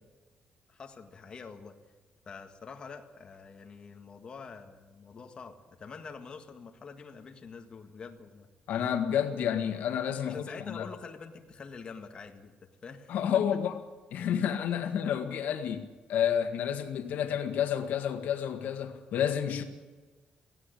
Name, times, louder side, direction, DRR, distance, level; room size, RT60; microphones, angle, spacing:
voice 1, 0.7-1.8 2.3-8.5 10.3-13.6 14.8-14.9, left 5 dB, 30° left, 4 dB, 1.8 m, -46 dB
voice 2, 8.7-10.9 13.1-13.7 14.1-19.6, left 9 dB, 75° left, 7 dB, 1.7 m, -30 dB
17.5 x 16.5 x 10.0 m, 1.3 s
cardioid pair, 165°, 3 cm